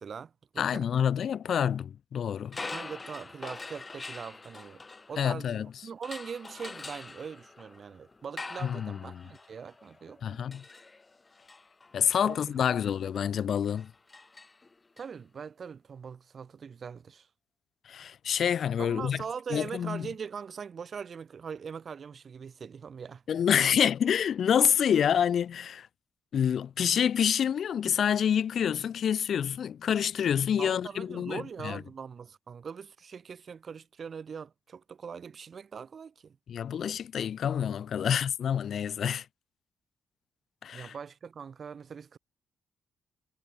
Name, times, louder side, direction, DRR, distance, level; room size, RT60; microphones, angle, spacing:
voice 1, 0.0-0.9 2.6-10.5 12.2-12.5 15.0-17.3 18.8-23.2 23.7-23.8 30.6-36.4 40.7-42.2, right 6 dB, 55° right, 1.1 m, -42 dB
voice 2, 0.6-2.6 5.2-5.7 8.6-9.2 10.2-10.6 11.9-13.9 17.9-19.2 19.5-20.1 23.3-25.9 26.3-31.8 36.5-39.2 40.6-40.9, left 8 dB, 65° left, 0.8 m, -27 dB
sound 1, 2.5-5.6 6.0-15.0, left 3 dB, 30° left, 1.6 m, -45 dB
supercardioid pair, 55°, 0 cm